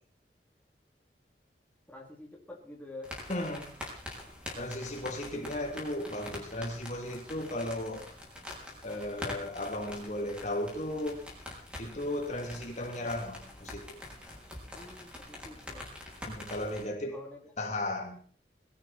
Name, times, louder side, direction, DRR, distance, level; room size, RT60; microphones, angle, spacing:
voice 1, 1.9-3.1 14.7-16.0 17.1-17.4 17.7-17.8, left 2 dB, 10° left, -2 dB, 3.3 m, -47 dB
sound 1, 3.0-16.8, left 1 dB, 5° right, 5.5 m, -45 dB
voice 2, 3.3-3.6 4.6-8.0 8.8-11.2 11.8-14.0 16.3-17.2 17.6-18.2, left 1 dB, 40° left, 2 dB, 3.1 m, -35 dB
22.0 x 13.5 x 4.4 m, 0.44 s
head